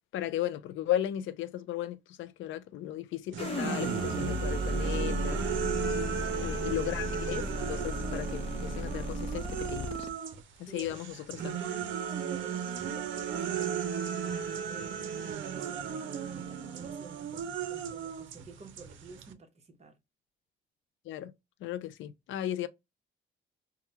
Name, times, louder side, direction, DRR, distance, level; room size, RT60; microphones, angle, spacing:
voice 1, 0.1-5.5 6.4-10.1 10.6-11.6 21.0-21.3 21.6-22.7, left 12 dB, 75° left, 0.4 m, -36 dB
sound 1, 3.3-10.4 10.8-19.3, right 8 dB, 70° right, 0.6 m, -35 dB
sound 2, 3.4-10.1, left 1 dB, 30° left, 0.8 m, -35 dB
voice 2, 6.2-6.8 10.7-11.0 11.5-11.8 12.3-15.9 16.3-20.0, right 4 dB, 35° right, 0.9 m, -51 dB
3.6 x 2.2 x 2.7 m
cardioid pair, 90°, 20 cm